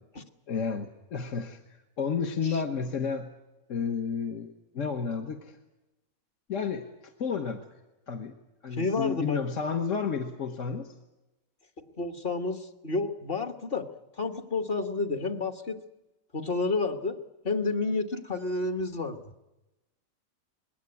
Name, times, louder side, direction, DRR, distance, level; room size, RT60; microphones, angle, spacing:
voice 1, 0.5-1.6 2.0-3.3 3.7-4.5 4.7-5.6 6.5-7.6 8.1-8.3 8.6-10.9, left 6 dB, 60° left, 5 dB, 1.5 m, -31 dB
voice 2, 8.7-9.4 11.8-13.9 14.2-15.8 16.3-17.2 17.4-19.2, left 3 dB, 40° left, 8 dB, 1.4 m, -30 dB
21.0 x 16.5 x 9.7 m, 1.0 s
omnidirectional pair, 1.5 m